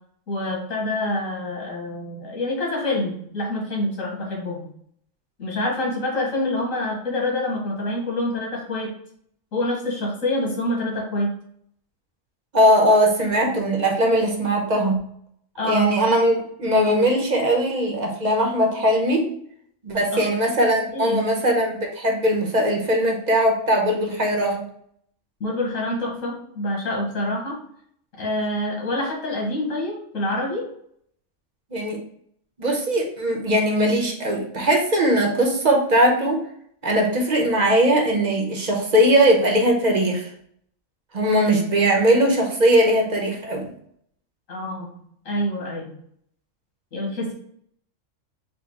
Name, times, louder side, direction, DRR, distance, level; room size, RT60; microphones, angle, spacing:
voice 1, 0.3-4.7 5.4-8.9 9.5-11.3 15.6-15.9 20.1-20.3 20.9-21.3 25.4-27.5 28.2-30.6 44.5-44.9 45.3-45.9 46.9-47.3, left 1 dB, 85° left, -2 dB, 1.9 m, -26 dB
voice 2, 12.5-15.0 15.6-19.3 19.8-24.7 31.7-32.0 32.6-36.4 36.8-40.3 41.1-43.7, right 1 dB, 40° right, 1 dB, 0.9 m, -20 dB
4.2 x 2.4 x 4.5 m, 0.67 s
omnidirectional pair, 1.3 m